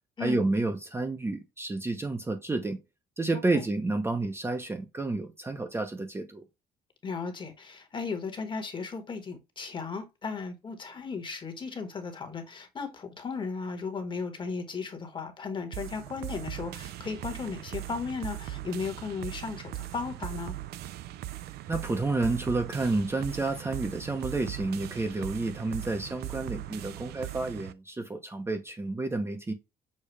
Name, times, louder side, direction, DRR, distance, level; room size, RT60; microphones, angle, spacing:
voice 1, 0.2-2.8 3.2-6.4 21.7-29.5, right 2 dB, 15° right, 0.7 m, -30 dB
voice 2, 7.0-20.5, left 4 dB, 30° left, 1.2 m, -36 dB
sound 1, 15.7-27.7, right 14 dB, 70° right, 0.5 m, -39 dB
6.5 x 2.4 x 3.2 m
cardioid pair, 110°, 17 cm